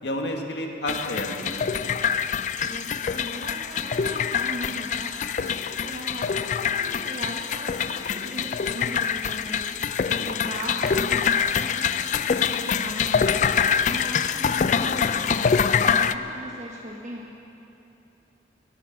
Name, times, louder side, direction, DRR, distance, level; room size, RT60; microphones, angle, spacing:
voice 1, 0.0-2.0 10.2-10.3, left 1 dB, 80° left, 2 dB, 1.7 m, -31 dB
sound 1, 0.9-16.1, left 6 dB, 45° left, 0.3 m, -25 dB
voice 2, 2.6-11.3 11.5-17.3, right 1 dB, 40° right, -3 dB, 1.3 m, -38 dB
18.0 x 13.0 x 5.9 m, 2.9 s
head